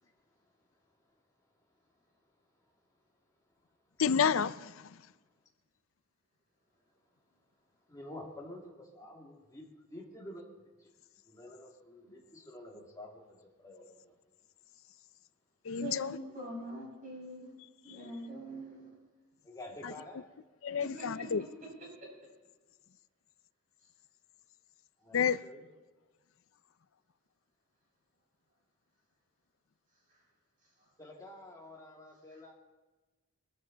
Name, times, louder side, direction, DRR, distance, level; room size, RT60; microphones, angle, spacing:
voice 1, 4.0-4.9 15.7-16.2 19.8-19.9 20.6-21.4 25.1-25.4, left 7 dB, 70° left, 0.5 m, -30 dB
voice 2, 7.9-10.5 10.8-10.9 11.3-14.2 19.4-20.3 25.0-25.7 31.0-32.5, left 1 dB, 15° left, 2.4 m, -49 dB
voice 3, 15.8-17.5 17.8-18.9 21.0-21.1, right 1 dB, 40° right, 5.7 m, -43 dB
21.5 x 14.5 x 4.0 m
head